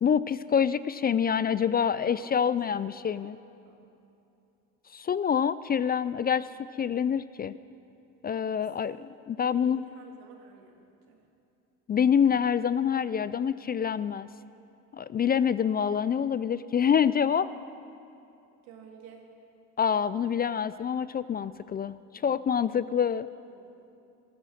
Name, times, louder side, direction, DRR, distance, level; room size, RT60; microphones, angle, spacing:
voice 1, 0.0-3.4 4.9-6.5 6.8-7.5 8.2-9.8 11.9-14.3 14.9-17.5 19.8-22.0 22.2-23.3, left 7 dB, 25° left, 16 dB, 0.3 m, -26 dB
voice 2, 2.1-3.3 3.6-3.8 9.4-10.8 11.1-11.2 18.6-19.3 23.3-23.7, right 6 dB, 90° right, 1 dB, 2.2 m, -52 dB
14.0 x 14.0 x 6.4 m, 2.7 s
supercardioid pair, 80°, 36 cm